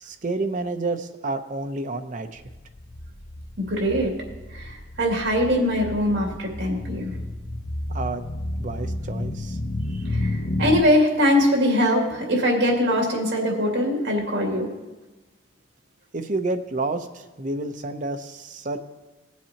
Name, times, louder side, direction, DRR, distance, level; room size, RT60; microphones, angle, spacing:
voice 1, 0.0-2.4 7.9-8.2 8.6-9.6 9.9-10.0 16.1-18.8, right 2 dB, 45° right, 6 dB, 0.7 m, -29 dB
sound 1, 2.4-10.8, left 1 dB, 60° left, 0.6 m, -31 dB
voice 2, 3.6-4.1 4.5-7.2 10.1-14.7, equal, 70° right, -1 dB, 2.4 m, -22 dB
17.5 x 7.3 x 2.9 m, 1.1 s
head